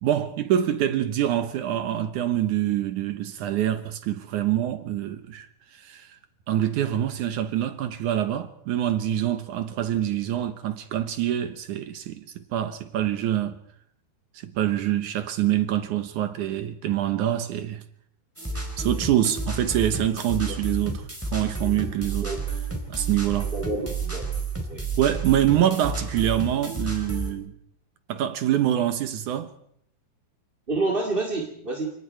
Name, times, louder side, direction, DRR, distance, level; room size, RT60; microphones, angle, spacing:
voice 1, 0.0-5.5 5.7-6.2 6.5-13.6 14.3-17.8 18.5-22.3 22.9-23.5 25.0-27.5 28.1-29.5, right 11 dB, 70° right, 1.9 m, -25 dB
sound 1, 18.4-27.3, right 3 dB, 5° right, 4.1 m, -31 dB
voice 2, 23.5-24.3 24.7-24.8 30.7-31.9, right 3 dB, 20° right, 1.8 m, -28 dB
30.0 x 19.0 x 4.7 m
omnidirectional pair, 4.7 m